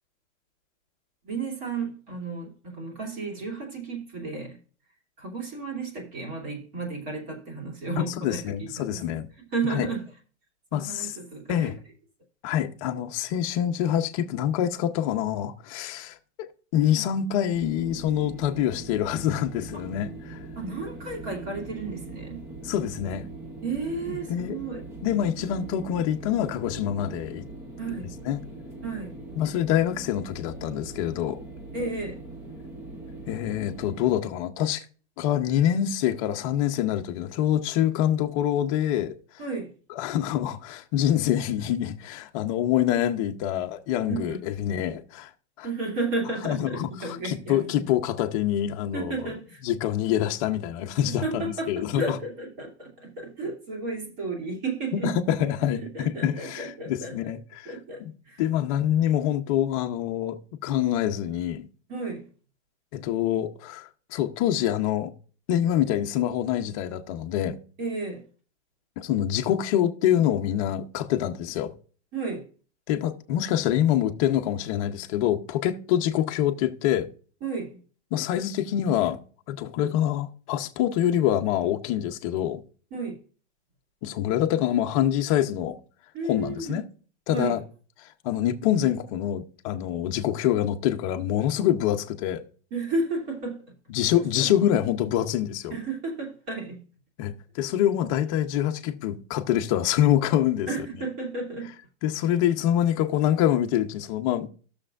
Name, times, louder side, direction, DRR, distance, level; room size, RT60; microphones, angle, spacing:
voice 1, 1.2-4.6 5.2-8.4 8.8-9.2 9.5-10.1 10.7-11.7 20.6-22.4 23.6-24.8 27.8-28.1 28.8-29.2 31.7-32.2 39.4-39.7 44.1-44.4 45.6-47.8 48.9-49.6 51.0-55.1 55.9-57.1 57.6-58.4 61.9-62.3 67.8-68.2 72.1-72.4 77.4-77.8 82.9-83.2 86.1-86.8 87.3-87.6 92.7-93.6 94.4-94.5 95.7-96.8 100.7-101.8, right 3 dB, 35° right, 2.7 m, -33 dB
voice 2, 8.0-9.3 9.7-9.9 10.7-11.1 11.5-11.7 12.4-20.4 22.6-23.3 24.1-24.6 25.0-27.5 28.3-28.4 29.4-31.4 33.3-34.8 35.2-39.2 40.0-45.3 45.6-45.7 46.4-49.3 49.6-52.2 54.9-57.7 58.0-58.1 58.4-61.7 62.9-65.1 65.5-67.6 69.0-71.7 72.9-77.1 78.1-79.2 79.5-82.6 84.0-85.8 86.3-86.8 87.3-87.6 88.0-92.4 93.9-95.7 97.2-101.0 102.0-104.5, left 11 dB, 30° left, 0.7 m, -26 dB
sound 1, 17.5-34.2, right 2 dB, 10° right, 0.4 m, -41 dB
14.5 x 6.7 x 2.5 m
supercardioid pair, 165°, 35 cm